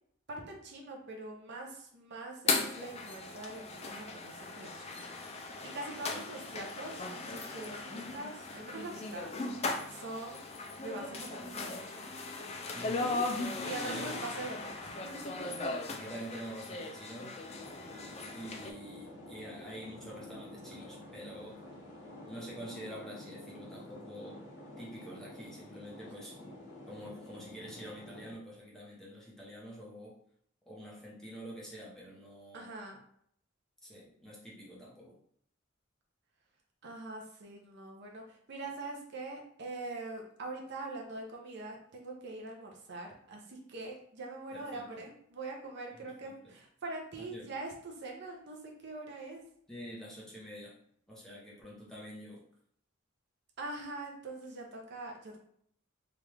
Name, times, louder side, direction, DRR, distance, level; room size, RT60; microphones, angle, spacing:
voice 1, 0.3-5.1 5.3-9.3 9.9-12.0 13.6-15.2 32.5-33.0 36.8-49.4 53.6-55.4, right 2 dB, 55° right, 0 dB, 0.6 m, -43 dB
sound 1, 2.5-18.7, left 3 dB, 30° left, 0.3 m, -38 dB
voice 2, 12.7-13.1 13.8-14.2 15.9-17.4 18.3-21.6 22.2-24.4 24.8-26.6 26.9-30.2 30.7-32.7 33.8-35.2 44.5-44.9 45.9-46.5 47.2-47.5 49.7-50.7 51.1-52.4, equal, ahead, -6 dB, 0.8 m, -47 dB
sound 2, 17.5-28.3, left 1 dB, 65° left, 1.0 m, -49 dB
3.0 x 2.4 x 3.3 m, 0.67 s
head